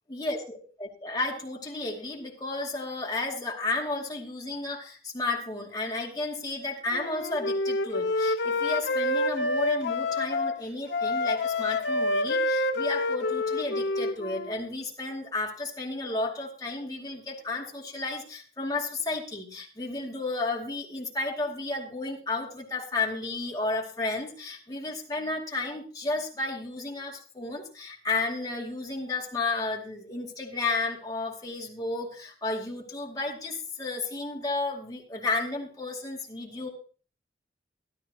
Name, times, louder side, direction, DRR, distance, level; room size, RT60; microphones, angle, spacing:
voice 1, 0.1-36.7, left 2 dB, 20° left, -2 dB, 2.4 m, -32 dB
Wind instrument woodwind instrument, 6.9-10.6 10.9-14.5, left 2 dB, 90° left, 0.8 m, -27 dB
13.0 x 12.5 x 3.0 m, 0.39 s
head